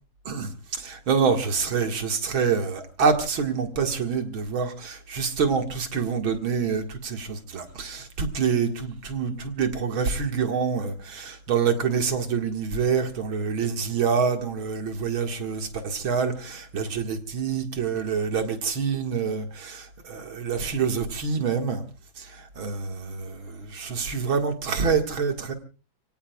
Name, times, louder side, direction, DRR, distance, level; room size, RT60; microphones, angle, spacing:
voice 1, 0.3-21.8 22.2-25.5, right 6 dB, 85° right, 2.7 m, -26 dB
30.0 x 17.5 x 2.4 m
omnidirectional pair, 2.2 m